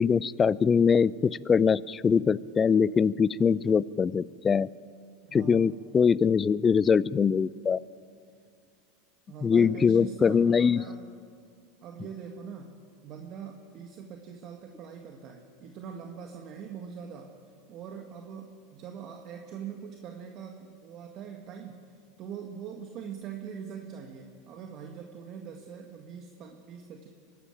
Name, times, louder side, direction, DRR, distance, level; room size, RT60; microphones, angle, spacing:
voice 1, 0.0-4.7 5.3-7.8 9.4-10.8, left 6 dB, 25° left, 22 dB, 0.4 m, -23 dB
voice 2, 5.2-5.8 9.3-11.1 11.8-17.4 17.7-21.9 22.2-27.1, right 7 dB, 45° right, 3 dB, 1.8 m, -42 dB
23.5 x 13.0 x 9.0 m, 2.1 s
hypercardioid pair, 95°, 0 cm